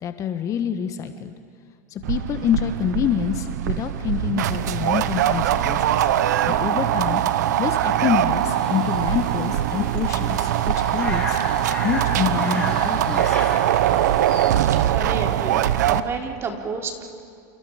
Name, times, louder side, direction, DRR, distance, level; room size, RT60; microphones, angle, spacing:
voice 1, 0.0-1.3 1.9-6.1 6.5-7.2 7.6-10.5 10.8-11.4 11.8-13.4, left 9 dB, 35° left, 8 dB, 1.4 m, -26 dB
sound 1, 2.0-16.0, right 11 dB, 80° right, 0.9 m, -22 dB
sound 2, 8.3-14.5, left 2 dB, 10° left, 7.8 m, -36 dB
voice 2, 14.7-17.0, right 4 dB, 30° right, 2 dB, 3.3 m, -31 dB
30.0 x 28.5 x 5.2 m, 2.3 s
supercardioid pair, 120°, 9 cm